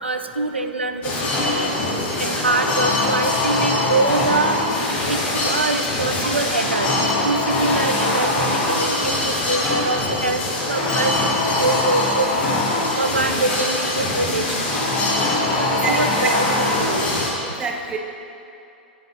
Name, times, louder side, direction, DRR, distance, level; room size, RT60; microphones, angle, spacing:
voice 1, 0.0-1.7 2.2-4.6 5.1-6.9 7.2-10.4 10.7-12.5 13.0-14.7 15.0-15.1 15.6-17.1, right 3 dB, 85° right, 8 dB, 0.4 m, -24 dB
sound 1, 1.0-17.3, left 2 dB, 25° left, 1.4 m, -22 dB
voice 2, 15.8-16.3 17.4-18.0, right 4 dB, 15° right, 4 dB, 0.5 m, -27 dB
7.4 x 5.4 x 3.8 m, 2.7 s
figure-of-eight pair, 100°, 6 cm